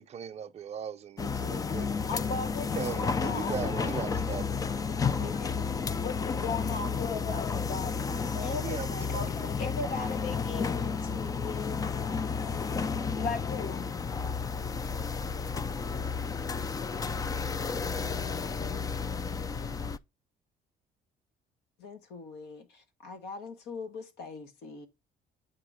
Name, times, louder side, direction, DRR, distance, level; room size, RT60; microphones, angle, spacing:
voice 1, 0.0-1.9 2.8-4.7 8.6-8.9 9.1-9.3, right 8 dB, 40° right, 0.6 m, -38 dB
sound 1, 1.2-20.0, left 5 dB, 20° left, 0.3 m, -32 dB
voice 2, 2.1-4.1 6.0-8.5 8.9-9.5 13.2-13.9, left 4 dB, 55° left, 1.1 m, -37 dB
voice 3, 5.0-6.4 8.4-9.1 9.4-11.8 21.8-24.9, left 4 dB, 80° left, 1.4 m, -41 dB
8.6 x 2.9 x 4.8 m
cardioid pair, 110°, 17 cm